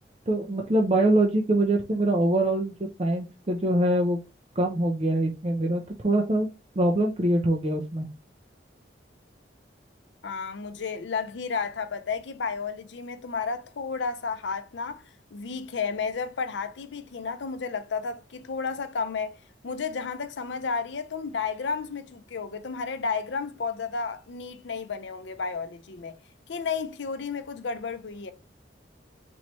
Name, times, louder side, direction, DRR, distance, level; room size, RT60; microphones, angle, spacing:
voice 1, 0.3-4.2 4.6-6.5 6.8-8.1, right 1 dB, 35° right, 0.5 m, -24 dB
voice 2, 10.2-15.0 15.3-19.4 19.6-26.2 26.5-28.3, left 5 dB, 75° left, 0.5 m, -32 dB
4.2 x 3.1 x 3.0 m
head